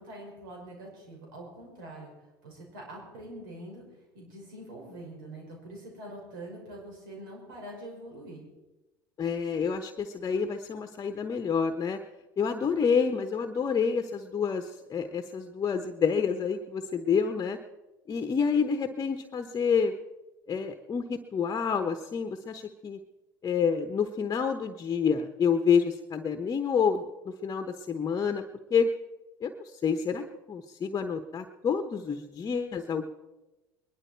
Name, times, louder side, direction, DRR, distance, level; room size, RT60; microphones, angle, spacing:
voice 1, 0.0-2.1 2.4-3.8 4.1-8.5, right 1 dB, 80° right, -1 dB, 5.8 m, -44 dB
voice 2, 9.2-12.0 12.4-17.6 18.1-19.9 20.5-23.0 23.4-28.4 28.7-28.9 29.4-33.1, left 6 dB, 30° left, 8 dB, 0.9 m, -28 dB
21.5 x 11.5 x 4.5 m, 1.1 s
hypercardioid pair, 80°, 11 cm